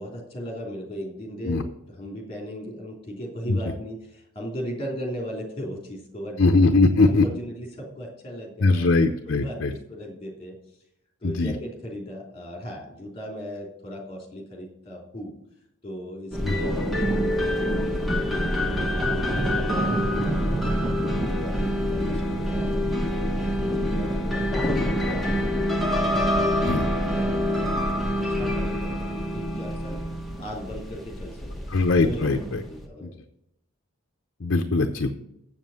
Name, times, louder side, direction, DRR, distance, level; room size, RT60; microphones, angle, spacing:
voice 1, 0.0-1.7 2.0-6.4 7.0-8.9 9.2-10.5 11.2-15.3 15.8-20.7 21.0-22.8 23.4-27.7 28.4-30.0 30.4-32.2 32.7-33.1, equal, 25° left, 0 dB, 2.9 m, -37 dB
voice 2, 6.4-7.3 8.6-9.7 11.2-11.5 16.4-16.5 26.6-26.8 31.7-32.6 33.0-33.1 34.4-35.1, left 3 dB, 55° left, 6 dB, 0.7 m, -21 dB
sound 1, 16.3-32.8, equal, ahead, 1.1 m, -26 dB
7.7 x 7.3 x 7.5 m, 0.80 s
head